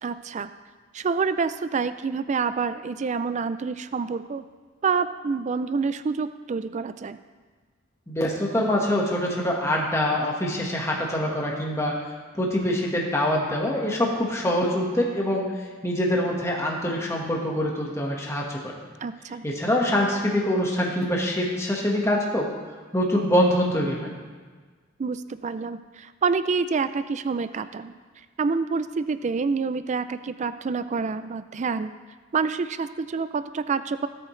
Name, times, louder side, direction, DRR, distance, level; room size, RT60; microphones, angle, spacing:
voice 1, 0.0-0.5 0.9-4.5 4.8-7.2 19.0-19.4 25.0-28.0 28.4-31.9 32.3-34.1, right 5 dB, 35° right, 12 dB, 0.4 m, -27 dB
voice 2, 8.1-12.0 12.3-18.7 19.4-22.5 22.9-24.1, left 1 dB, 15° left, -2 dB, 1.5 m, -24 dB
17.5 x 8.6 x 3.2 m, 1.5 s
head